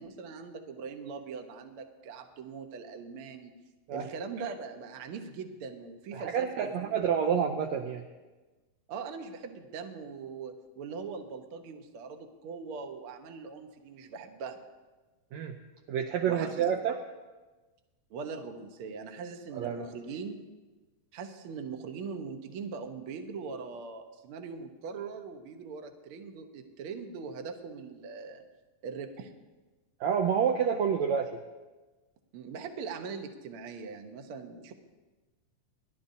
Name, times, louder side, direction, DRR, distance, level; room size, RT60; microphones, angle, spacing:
voice 1, 0.0-3.5 3.9-7.0 8.9-14.6 16.3-16.8 18.1-20.4 21.1-28.4 28.8-29.3 32.3-34.7, right 5 dB, 60° right, 5 dB, 1.5 m, -41 dB
voice 2, 6.1-8.1 15.3-15.6 15.9-17.0 19.5-19.9 30.0-31.3, right 7 dB, 75° right, 3 dB, 1.7 m, -28 dB
30.0 x 11.5 x 2.8 m, 1.2 s
omnidirectional pair, 3.8 m